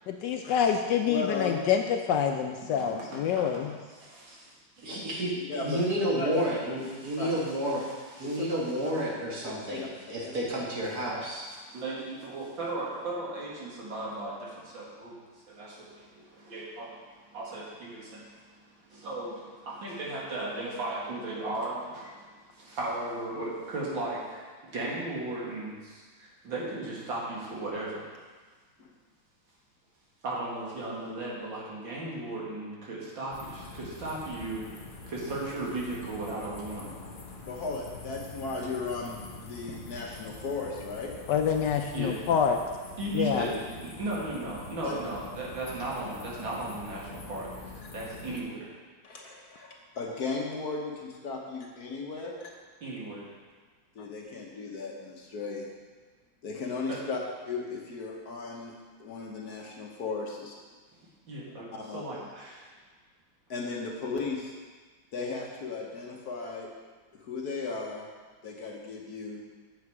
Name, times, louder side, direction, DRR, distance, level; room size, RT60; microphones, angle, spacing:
voice 1, 0.1-3.7 41.3-42.6 43.1-43.5, left 8 dB, 75° left, 5 dB, 1.1 m, -27 dB
voice 2, 1.0-1.7 5.5-5.8 6.2-6.3 7.2-7.3 8.2-8.6 9.7-9.9 10.2-10.3 11.1-11.2 28.8-28.9 37.4-41.1 43.3-43.4 44.8-44.9 49.0-52.5 53.9-55.7 56.4-57.2 57.5-58.7 59.0-60.6 61.7-62.1 63.5-64.5 65.1-66.7 67.1-68.1 68.4-69.4, left 4 dB, 55° left, -1 dB, 1.4 m, -36 dB
voice 3, 2.6-5.0 6.3-6.4 7.0-7.9 8.2-8.5 8.8-8.9 11.7-15.2 15.5-28.1 30.2-34.6 35.1-36.9 41.9-42.2 43.0-47.5 47.9-48.7 52.8-53.3 56.9-57.0 61.3-62.7, right 2 dB, 75° right, -5 dB, 2.6 m, -36 dB
voice 4, 4.8-7.8 8.2-11.5, equal, 50° right, -4 dB, 2.2 m, -30 dB
sound 1, 33.3-48.4, left 3 dB, 40° left, 0.7 m, -45 dB
8.5 x 7.1 x 4.8 m, 1.4 s
omnidirectional pair, 2.1 m